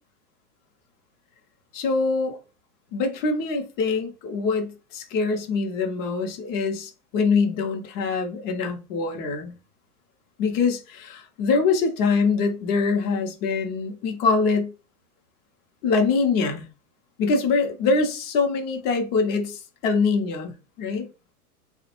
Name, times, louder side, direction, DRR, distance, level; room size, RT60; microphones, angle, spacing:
voice 1, 1.7-2.4 2.9-9.5 10.4-14.7 15.8-16.7 17.2-21.1, left 4 dB, 25° left, 0.5 m, -24 dB
3.1 x 2.1 x 2.9 m
hypercardioid pair, 135°, 44 cm